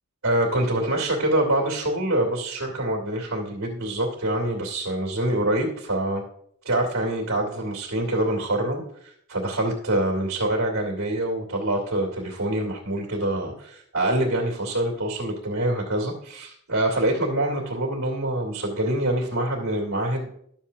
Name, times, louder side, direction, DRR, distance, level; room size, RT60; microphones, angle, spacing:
voice 1, 0.2-6.2 6.6-20.3, right 1 dB, 70° right, -2 dB, 2.5 m, -25 dB
12.0 x 7.4 x 2.8 m, 0.69 s
head